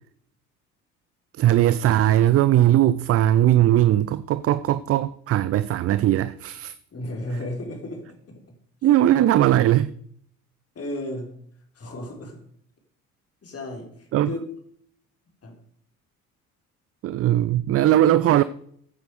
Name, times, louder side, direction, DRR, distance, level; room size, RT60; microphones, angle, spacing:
voice 1, 1.4-6.7 8.8-9.9 14.1-14.3 17.0-18.4, right 13 dB, 35° right, 0.5 m, -19 dB
voice 2, 6.9-8.4 10.8-11.3 11.7-12.4 13.4-14.5 15.4-15.5, left 1 dB, 35° left, 4.0 m, -34 dB
14.5 x 9.2 x 5.0 m
figure-of-eight pair, 55°, 43 cm